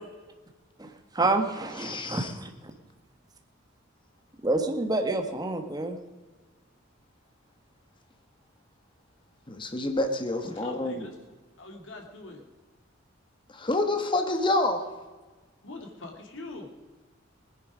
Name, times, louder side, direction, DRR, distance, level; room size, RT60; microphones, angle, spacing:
voice 1, 1.1-2.7 4.4-6.0, right 2 dB, 20° right, 5 dB, 1.4 m, -28 dB
voice 2, 1.8-2.3 9.5-11.1 13.5-14.9, left 2 dB, 25° left, 6 dB, 1.2 m, -28 dB
voice 3, 10.4-11.2 11.6-12.4 15.6-16.7, left 2 dB, 70° left, 2 dB, 2.5 m, -42 dB
19.5 x 10.5 x 5.0 m, 1.3 s
head